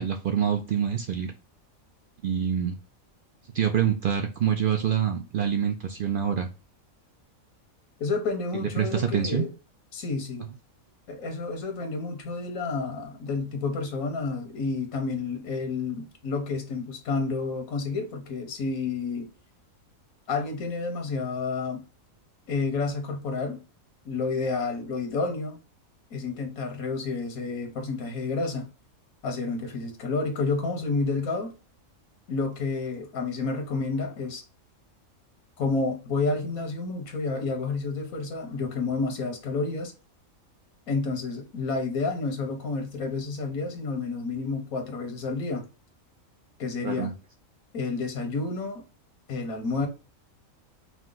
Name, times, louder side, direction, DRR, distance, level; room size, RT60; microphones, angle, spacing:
voice 1, 0.0-1.3 2.2-2.8 3.5-6.5 8.5-9.4 46.8-47.1, right 8 dB, 75° right, 0.5 m, -26 dB
voice 2, 8.0-9.5 9.9-10.5 11.1-19.3 20.3-21.8 22.5-23.6 24.0-25.6 26.1-28.7 29.2-31.5 32.3-34.4 35.6-39.9 40.9-45.7 46.6-47.1 47.7-48.8 49.3-49.9, left 4 dB, 90° left, 1.4 m, -30 dB
4.8 x 2.2 x 3.7 m
omnidirectional pair, 1.4 m